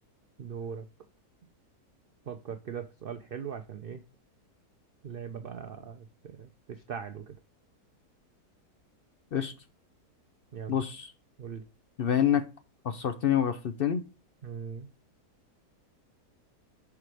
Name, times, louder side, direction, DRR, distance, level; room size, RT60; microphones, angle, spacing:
voice 1, 0.4-0.9 2.3-4.0 5.0-7.4 10.5-10.8 11.4-11.6 14.4-14.9, right 7 dB, 75° right, 0.5 m, -40 dB
voice 2, 10.7-11.1 12.0-12.4 12.8-14.0, left 9 dB, 70° left, 0.5 m, -27 dB
5.8 x 4.7 x 4.8 m
omnidirectional pair, 1.7 m